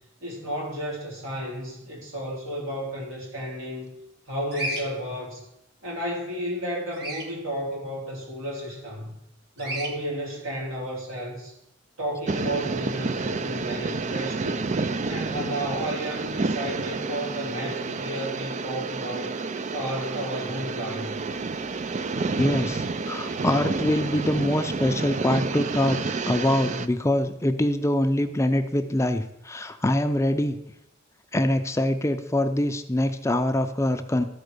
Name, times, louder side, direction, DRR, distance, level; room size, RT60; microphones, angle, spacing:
voice 1, 0.2-3.9 4.3-5.4 5.8-9.1 9.6-11.6 12.0-14.7 15.1-19.4 19.7-21.2, equal, 85° right, -3 dB, 3.9 m, -32 dB
Bird vocalization bird call bird song, 4.5-4.8 6.9-7.3 9.6-9.9, right 1 dB, 55° right, 2.3 m, -31 dB
sound 1, 12.3-26.9, right 3 dB, 35° right, 0.4 m, -30 dB
sound 2, 21.0-28.3, right 2 dB, 70° right, 4.7 m, -51 dB
voice 2, 22.4-30.6 31.3-34.2, left 1 dB, 15° left, 8 dB, 0.5 m, -24 dB
13.0 x 4.4 x 6.7 m, 0.83 s
head